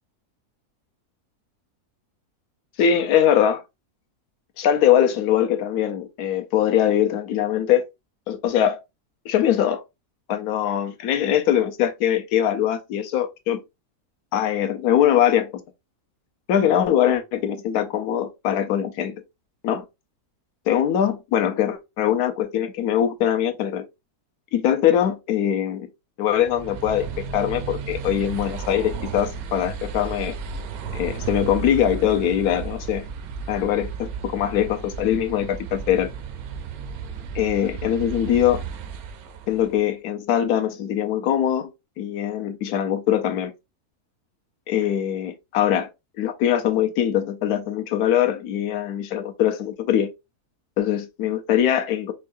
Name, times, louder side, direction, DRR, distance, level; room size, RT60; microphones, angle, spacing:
voice 1, 2.8-3.6 4.6-7.9 8.3-8.8 9.2-9.8 10.3-13.6 14.3-15.5 16.5-19.2 19.6-19.8 20.7-23.8 24.5-25.9 26.2-30.4 30.9-33.1 33.5-36.1 37.3-38.6 39.5-41.7 42.0-43.5 44.7-45.9 46.2-50.1 50.8-52.1, left 10 dB, 80° left, 1.1 m, -22 dB
sound 1, 26.3-39.8, right 6 dB, 75° right, 1.0 m, -34 dB
4.6 x 2.2 x 2.5 m
omnidirectional pair, 1.6 m